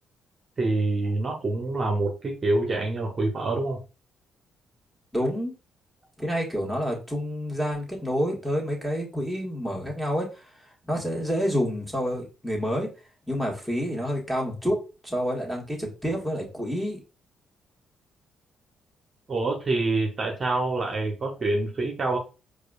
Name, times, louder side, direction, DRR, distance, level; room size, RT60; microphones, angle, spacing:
voice 1, 0.6-3.8 19.3-22.2, right 2 dB, 45° right, 1 dB, 0.8 m, -26 dB
voice 2, 5.1-5.5 6.2-12.9 13.3-14.8 15.0-17.0, equal, ahead, -2 dB, 1.6 m, -28 dB
4.7 x 2.4 x 2.3 m, 0.31 s
supercardioid pair, 55°, 0 cm